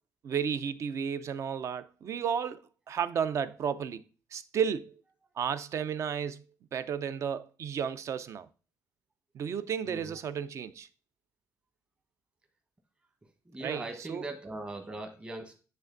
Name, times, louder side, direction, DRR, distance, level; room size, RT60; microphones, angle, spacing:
voice 1, 0.2-4.0 4.3-5.0 5.4-6.4 6.7-8.5 9.3-10.9 13.6-14.3, right 7 dB, 50° right, 0.6 m, -33 dB
voice 2, 9.9-10.2 13.5-15.6, right 2 dB, 15° right, 1.1 m, -40 dB
9.8 x 3.4 x 3.8 m
cardioid pair, 160°, 7 cm